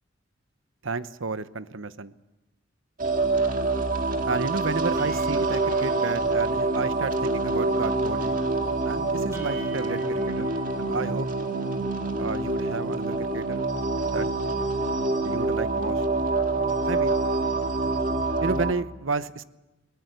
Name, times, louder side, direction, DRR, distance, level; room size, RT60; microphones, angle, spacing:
voice 1, 0.8-2.1 4.3-8.4 8.8-10.0 10.4-10.5 10.8-11.3 12.2-13.6 14.1-14.3 15.2-16.0 16.8-17.2 18.4-19.4, right 4 dB, 85° right, 14 dB, 0.9 m, -31 dB
sound 1, 3.0-18.7, right 3 dB, 45° right, 1.9 m, -26 dB
sound 2, 5.0-6.8 7.1-7.5 7.8-8.2 8.7-8.8 9.3-11.9, right 2 dB, 15° right, 4.3 m, -47 dB
22.0 x 19.0 x 8.1 m, 1.1 s
head